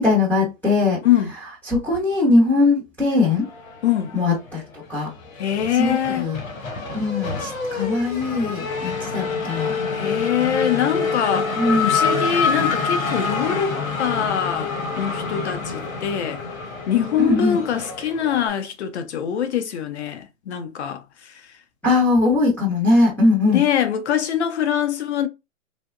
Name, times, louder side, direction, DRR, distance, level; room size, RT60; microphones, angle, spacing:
voice 1, 0.0-1.0 1.7-3.5 4.1-4.6 4.9-5.1 5.7-6.4 6.9-9.8 11.5-11.9 17.2-17.6 21.8-23.6, left 3 dB, 5° left, 0.7 m, -20 dB
Race car auto racing / Accelerating revving vroom, 3.5-4.5 4.8-18.5, left 4 dB, 85° left, 0.9 m, -26 dB
voice 2, 3.8-4.1 5.4-6.3 9.9-14.7 15.0-16.4 16.9-21.4 23.5-25.3, left 9 dB, 55° left, 0.7 m, -23 dB
3.3 x 2.1 x 2.4 m
hypercardioid pair, 135°, 40 cm